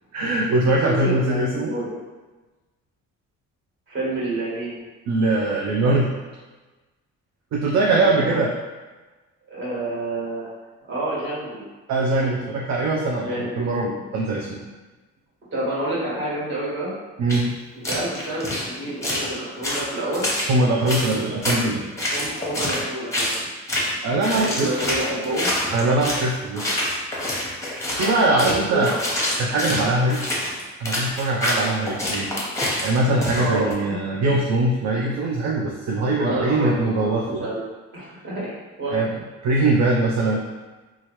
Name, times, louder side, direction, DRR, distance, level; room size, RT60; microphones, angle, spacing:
voice 1, 0.1-1.7 5.1-6.1 7.5-8.5 11.9-14.6 17.2-17.5 20.5-21.8 24.0-24.7 25.7-26.6 27.9-28.9 29.4-30.3 30.8-32.3 32.8-37.4 38.9-39.1 39.4-40.4, right 2 dB, 65° right, -2 dB, 0.5 m, -22 dB
voice 2, 0.6-1.9 3.9-4.8 7.8-8.4 9.5-10.5 10.9-11.6 12.0-12.3 13.2-13.6 15.5-16.9 17.9-20.3 22.0-23.4 24.3-25.5 28.0-28.9 33.3-34.0 36.1-37.6 37.9-39.0, right 1 dB, 40° right, -8 dB, 1.4 m, -29 dB
sound 1, 17.3-17.4 17.8-18.7 19.0-19.3 19.6-20.5 20.9-21.6 22.0-22.8 23.1-23.4 23.7-24.0 24.2-26.3 26.6-33.7, left 1 dB, 10° left, 0.9 m, -26 dB
2.9 x 2.4 x 3.0 m, 1.2 s
cardioid pair, 90°, 30 cm